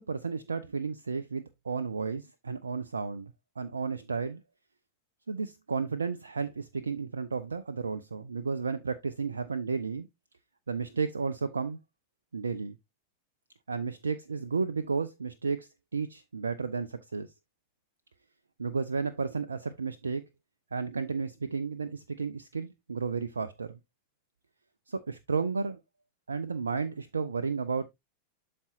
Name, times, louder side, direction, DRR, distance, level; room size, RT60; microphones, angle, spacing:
voice 1, 0.1-4.4 5.3-10.1 10.7-11.8 12.3-12.8 13.7-17.3 18.6-20.2 20.7-23.8 24.9-25.8 26.3-27.8, right 5 dB, 75° right, 0.5 m, -33 dB
12.5 x 4.3 x 2.5 m
figure-of-eight pair, 90°, 0 cm